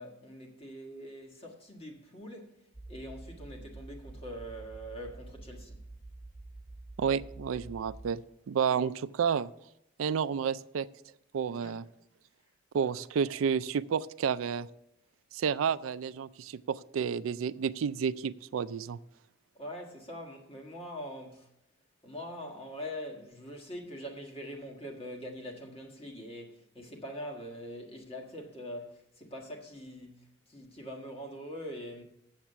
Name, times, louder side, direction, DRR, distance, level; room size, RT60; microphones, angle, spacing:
voice 1, 0.0-5.9 8.6-8.9 11.4-11.8 12.8-12.9 19.5-21.5 22.0-32.0, equal, 30° left, 1.5 m, -43 dB
sound 1, 2.7-8.1, right 2 dB, 5° left, 0.9 m, -48 dB
voice 2, 7.0-8.2 8.5-9.5 10.0-10.9 11.3-11.8 12.7-14.7 15.3-19.0, right 7 dB, 90° right, 0.4 m, -30 dB
7.4 x 7.3 x 6.8 m
head